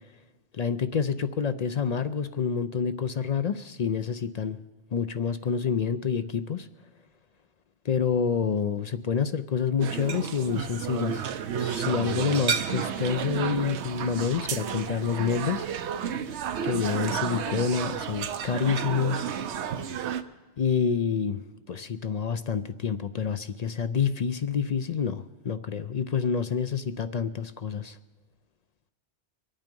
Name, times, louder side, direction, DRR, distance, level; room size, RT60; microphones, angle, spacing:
voice 1, 0.5-4.6 4.9-6.7 7.8-11.3 11.6-15.7 16.6-19.3 20.6-21.4 21.7-28.0, left 6 dB, 50° left, 11 dB, 0.5 m, -28 dB
sound 1, 9.8-20.2, right 7 dB, 80° right, 1.0 m, -31 dB
24.0 x 9.0 x 5.3 m, 1.3 s
omnidirectional pair, 1.1 m